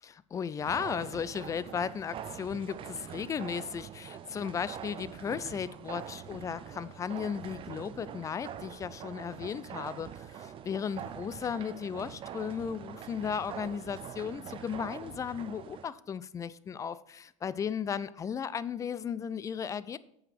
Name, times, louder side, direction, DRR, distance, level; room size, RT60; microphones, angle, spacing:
voice 1, 0.3-20.0, left 7 dB, 20° left, 0.4 m, -35 dB
sound 1, 0.6-15.9, right 9 dB, 30° right, 0.6 m, -44 dB
8.6 x 5.1 x 5.8 m
hypercardioid pair, 90°, 17 cm